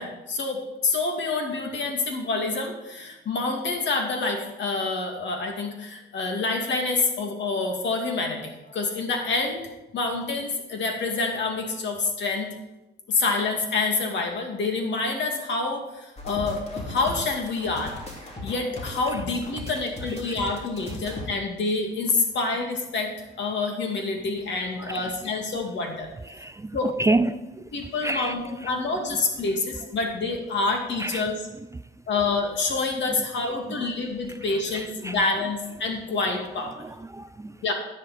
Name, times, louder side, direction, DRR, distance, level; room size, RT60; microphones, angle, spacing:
voice 1, 0.0-9.6 9.9-12.5 13.1-17.9 18.4-23.1 23.4-26.1 26.7-26.9 27.7-31.4 32.1-36.8 37.6-37.7, left 3 dB, 65° left, 2.5 m, -27 dB
sound 1, 16.2-21.3, left 2 dB, 35° left, 3.2 m, -37 dB
voice 2, 24.8-25.3 26.2-27.4 27.8-28.7 29.1-29.2 31.0-31.3 31.7-31.8 33.2-33.3 33.7-33.9 34.3-35.2 35.9-36.0 36.8-37.6, right 2 dB, 15° right, 0.3 m, -30 dB
11.0 x 10.5 x 4.4 m
cardioid pair, 90°, 20 cm